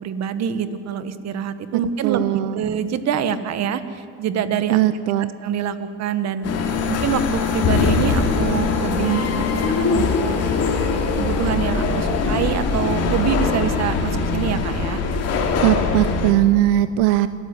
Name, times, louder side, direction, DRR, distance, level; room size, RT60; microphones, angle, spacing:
voice 1, 0.0-4.8 5.4-6.5 6.9-9.5 9.8-10.4 11.2-15.0, right 8 dB, 50° right, 11 dB, 1.6 m, -25 dB
voice 2, 2.0-2.6 4.7-5.3 15.6-17.3, right 14 dB, 85° right, 14 dB, 0.8 m, -19 dB
sound 1, 6.4-16.3, left 4 dB, 45° left, 3.3 m, -21 dB
28.0 x 13.5 x 9.9 m, 2.2 s
supercardioid pair, 115°, 34 cm